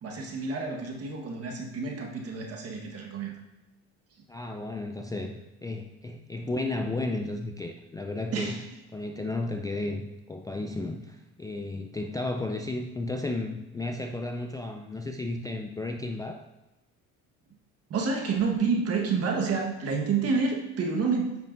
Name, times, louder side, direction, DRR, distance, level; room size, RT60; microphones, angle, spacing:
voice 1, 0.0-3.3 8.3-8.6 17.9-21.4, right 4 dB, 50° right, 1 dB, 1.4 m, -29 dB
voice 2, 4.3-8.6 8.9-16.5, left 2 dB, 10° left, 4 dB, 0.3 m, -33 dB
9.2 x 5.7 x 2.6 m, 1.0 s
cardioid pair, 105°, 32 cm